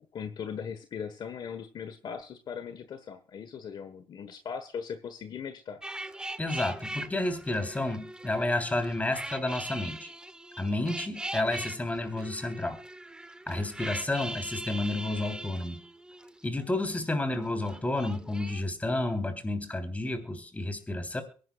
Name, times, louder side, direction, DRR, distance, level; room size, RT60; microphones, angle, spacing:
voice 1, 0.1-5.8 14.2-14.3, left 7 dB, 60° left, 10 dB, 1.3 m, -39 dB
sound 1, 5.8-17.0 17.3-18.6, right 1 dB, 10° right, 0.9 m, -41 dB
voice 2, 6.4-10.1 10.6-12.8 13.5-15.8 16.4-21.2, left 2 dB, 20° left, 7 dB, 3.4 m, -31 dB
23.5 x 10.5 x 2.4 m, 0.38 s
cardioid pair, 85°, 8 cm